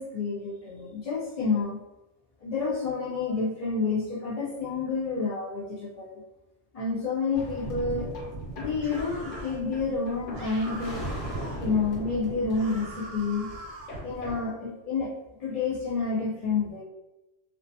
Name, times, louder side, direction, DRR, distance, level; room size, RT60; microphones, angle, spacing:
voice 1, 0.0-1.8 2.4-6.1 6.7-8.1 8.6-11.0 11.6-13.5 14.0-15.1 15.4-16.8, left 4 dB, 55° left, -5 dB, 0.4 m, -29 dB
sound 1, 7.3-14.4, right 1 dB, 85° left, 1.1 m, -38 dB
sound 2, 8.8-9.6 10.3-11.6 12.5-14.0, right 2 dB, 65° right, 0.7 m, -43 dB
2.4 x 2.2 x 2.6 m, 1.0 s
omnidirectional pair, 1.2 m